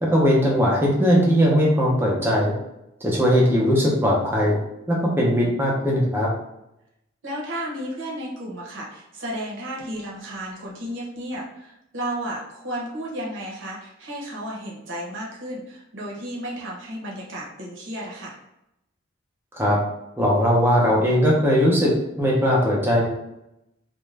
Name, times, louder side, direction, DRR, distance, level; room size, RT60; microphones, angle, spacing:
voice 1, 0.0-2.5 3.0-4.6 4.9-6.3 19.5-19.8 20.2-23.1, equal, 10° right, -4 dB, 0.6 m, -19 dB
voice 2, 7.2-18.4, right 1 dB, 75° right, -4 dB, 0.7 m, -33 dB
2.4 x 2.1 x 3.2 m, 0.86 s
head